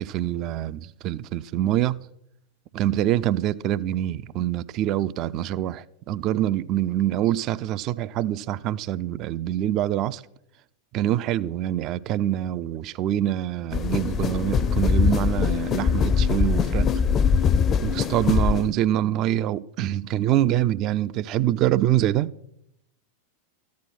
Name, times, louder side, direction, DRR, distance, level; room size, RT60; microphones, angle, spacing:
voice 1, 0.0-2.0 2.7-10.2 10.9-16.9 17.8-22.3, right 12 dB, 35° right, 0.4 m, -25 dB
sound 1, 13.7-18.7, left 6 dB, 25° left, 0.5 m, -22 dB
14.0 x 10.5 x 6.0 m
figure-of-eight pair, 90°, 0 cm